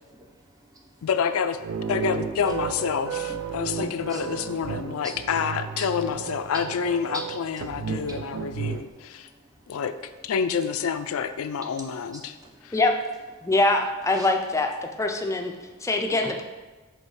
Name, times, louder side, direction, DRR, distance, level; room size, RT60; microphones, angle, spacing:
voice 1, 0.1-1.1 3.5-3.6 4.1-4.3 4.8-5.2 5.8-5.9 7.1-7.2 7.9-8.2 8.7-9.8 11.9-12.8 13.4-13.5 14.1-14.3 15.6-15.9 16.2-16.3, right 1 dB, 15° right, 0 dB, 0.8 m, -44 dB
voice 2, 1.0-1.6 1.9-9.3 9.7-10.0 10.2-12.4 12.6-12.8, left 6 dB, 90° left, 10 dB, 0.4 m, -28 dB
sound 1, 1.6-8.9, right 6 dB, 75° right, 0.4 m, -33 dB
voice 3, 13.4-15.5 15.8-16.4, left 2 dB, 15° left, 4 dB, 0.4 m, -23 dB
5.3 x 3.8 x 4.7 m, 1.3 s
head